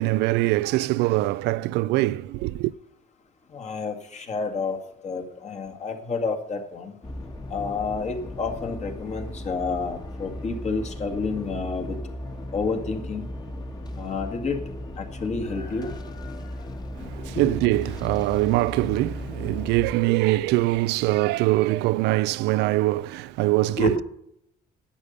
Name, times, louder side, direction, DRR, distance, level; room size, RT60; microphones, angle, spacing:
voice 1, 0.0-2.7 16.9-24.0, right 18 dB, 85° right, 0.4 m, -23 dB
voice 2, 3.5-4.8 5.0-6.9 7.5-12.0 12.5-13.3 14.0-14.6 15.0-15.9 17.3-17.5 23.8-24.0, left 4 dB, 40° left, 1.9 m, -29 dB
sound 1, 7.0-19.9, left 1 dB, 25° left, 1.5 m, -36 dB
Chicken rooster, 15.4-21.2, left 4 dB, 65° left, 4.3 m, -50 dB
11.5 x 8.4 x 5.5 m
cardioid pair, 110°, 17 cm